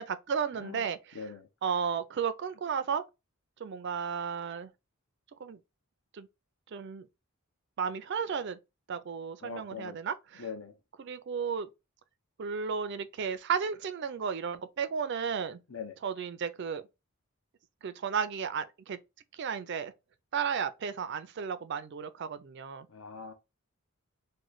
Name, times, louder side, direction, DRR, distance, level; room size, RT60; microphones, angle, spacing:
voice 1, 0.0-1.2 1.6-3.0 3.6-4.7 5.4-5.6 6.1-6.3 6.7-7.1 7.8-8.6 8.9-10.4 11.0-11.7 12.4-15.6 16.0-16.8 17.8-19.0 19.3-19.9 20.3-22.9, right 6 dB, 50° right, 0.3 m, -33 dB
voice 2, 0.5-0.9 1.1-1.5 9.4-10.0 10.4-10.8 15.7-16.0 22.9-23.3, left 6 dB, 70° left, 0.7 m, -42 dB
3.1 x 2.1 x 3.8 m
head